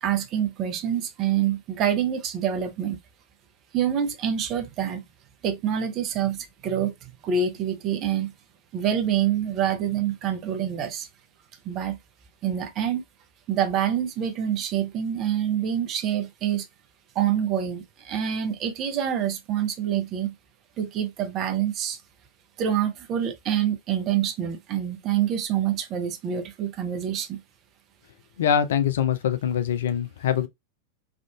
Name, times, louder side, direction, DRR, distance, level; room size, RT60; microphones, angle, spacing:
voice 1, 0.0-3.0 3.7-5.1 5.4-6.9 7.2-8.3 8.7-11.1 11.6-12.0 12.4-13.0 13.5-16.7 17.1-20.3 20.8-22.0 22.6-27.4, right 9 dB, 35° right, 0.7 m, -26 dB
voice 2, 28.4-30.5, left 8 dB, 60° left, 0.4 m, -23 dB
3.6 x 2.4 x 2.3 m
figure-of-eight pair, 90°, 0 cm